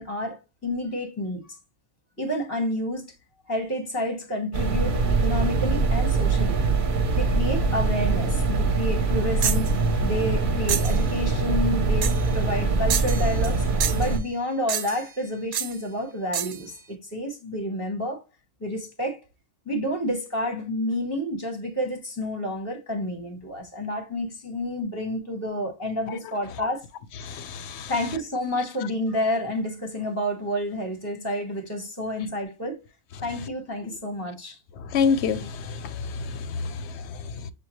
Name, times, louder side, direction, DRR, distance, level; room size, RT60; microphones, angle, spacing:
voice 1, 0.0-1.6 2.2-3.0 3.5-6.6 7.2-9.7 10.0-13.6 13.9-18.2 18.6-19.2 19.7-26.9 27.8-32.8 33.2-34.6, left 1 dB, 15° left, 0.8 m, -29 dB
sound 1, 4.5-14.2, right 3 dB, 50° right, 0.8 m, -23 dB
sound 2, 9.4-9.7 10.7-11.0 12.0-12.3 12.9-13.6 13.8-14.1 14.7-15.1 15.5-15.8 16.3-16.6, right 9 dB, 80° right, 0.9 m, -28 dB
voice 2, 27.2-27.9 34.9-37.5, left 5 dB, 70° left, 0.8 m, -28 dB
6.6 x 2.3 x 3.0 m
omnidirectional pair, 1.2 m